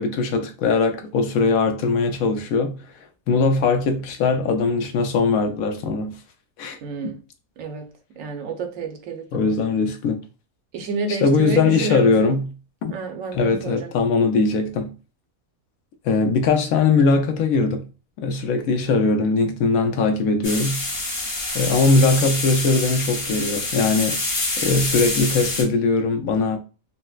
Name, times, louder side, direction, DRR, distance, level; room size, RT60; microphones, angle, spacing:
voice 1, 0.0-2.8 3.3-6.2 6.6-6.8 7.0-7.1 9.3-10.2 11.2-12.5 12.8-12.9 13.3-14.9 16.0-17.8 18.2-20.8 21.5-24.2 24.6-26.6, left 4 dB, 80° left, 1.0 m, -20 dB
voice 2, 6.8-7.2 7.6-7.9 8.2-9.6 10.7-12.4 12.9-13.9, right 3 dB, 70° right, 1.0 m, -29 dB
sound 1, 20.4-25.6, left 2 dB, 45° left, 1.0 m, -26 dB
4.0 x 2.0 x 2.3 m
omnidirectional pair, 1.5 m